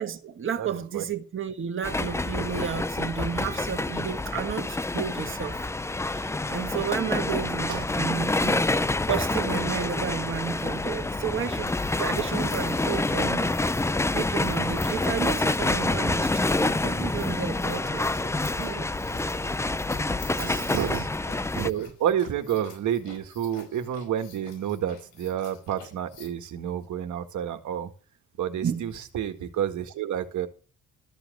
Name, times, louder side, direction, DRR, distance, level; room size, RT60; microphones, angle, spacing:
voice 1, 0.0-5.6 6.0-7.7 8.0-8.7 9.1-13.8 14.1-18.9 20.4-20.7 28.6-28.9, right 8 dB, 40° right, 1.6 m, -32 dB
voice 2, 0.6-1.0 7.4-7.9 20.4-21.1 21.5-27.9 28.4-30.5, right 10 dB, 75° right, 1.8 m, -30 dB
sound 1, 1.8-21.7, left 2 dB, 10° left, 0.5 m, -27 dB
sound 2, 11.6-26.3, left 6 dB, 85° left, 5.0 m, -48 dB
13.5 x 5.1 x 7.8 m
cardioid pair, 90°, 30 cm